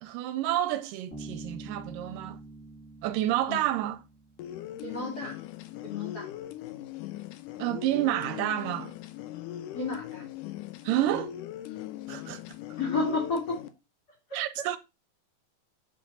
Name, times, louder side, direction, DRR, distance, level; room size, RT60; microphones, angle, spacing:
voice 1, 0.0-2.4 3.0-4.0 7.6-9.0 10.8-11.3 12.1-12.4 14.3-14.8, right 13 dB, 80° right, 2.1 m, -29 dB
Bass guitar, 1.1-4.7, right 2 dB, 5° left, 1.6 m, -45 dB
sound 1, 4.4-13.7, left 13 dB, 75° left, 2.1 m, -40 dB
voice 2, 4.8-5.4 5.8-6.3 9.7-10.3 12.8-13.6 14.3-14.7, left 3 dB, 35° left, 2.1 m, -32 dB
7.7 x 5.1 x 3.9 m
omnidirectional pair, 3.9 m